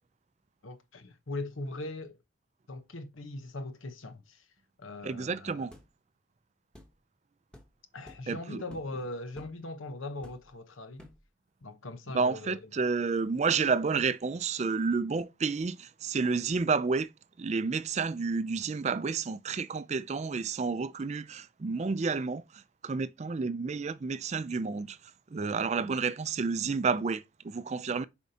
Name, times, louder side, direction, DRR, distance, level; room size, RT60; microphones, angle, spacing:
voice 1, 0.6-2.2 2.7-4.4 4.8-5.7 7.9-11.1 11.6-12.6, left 2 dB, 85° left, 1.0 m, -40 dB
voice 2, 5.0-5.7 8.3-8.6 12.1-17.1 17.4-28.0, right 4 dB, 35° right, 0.4 m, -30 dB
sound 1, 5.7-5.9 6.7-6.9 7.5-7.7 8.1-8.3 8.7-9.0 9.4-9.6 10.2-10.6 11.0-11.3, left 1 dB, 5° left, 1.1 m, -52 dB
7.1 x 5.2 x 2.8 m
head